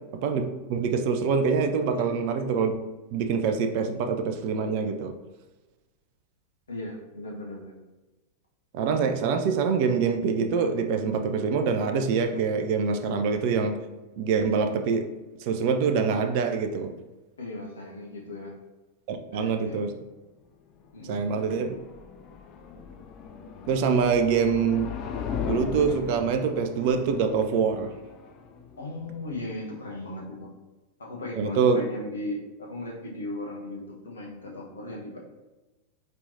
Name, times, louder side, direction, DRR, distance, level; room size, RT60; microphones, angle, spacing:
voice 1, 0.7-2.7 3.1-5.1 8.7-13.8 14.2-15.1 15.4-16.9 19.1-19.9 21.1-21.7 23.7-24.9 25.4-27.9 31.4-31.8, right 5 dB, 45° right, 6 dB, 0.4 m, -25 dB
voice 2, 6.7-7.8 13.1-13.2 17.4-18.6 19.3-19.8 20.9-21.7 28.8-30.5 31.0-35.2, left 1 dB, 70° left, -1 dB, 0.9 m, -37 dB
sound 1, 20.8-29.8, left 6 dB, 35° left, 0.4 m, -38 dB
4.5 x 3.3 x 2.7 m, 1.1 s
figure-of-eight pair, 90°, 0 cm